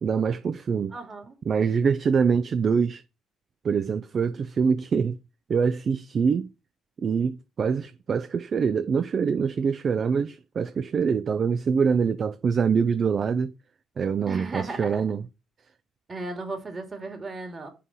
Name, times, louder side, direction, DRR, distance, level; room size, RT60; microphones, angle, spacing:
voice 1, 0.0-0.9 1.5-3.0 3.6-5.2 5.5-6.5 7.0-13.5 14.0-15.2, right 6 dB, 50° right, 0.4 m, -24 dB
voice 2, 0.9-1.4 14.3-15.1 16.1-17.7, right 3 dB, 35° right, 2.2 m, -35 dB
5.8 x 4.0 x 6.2 m
supercardioid pair, 65°, 0 cm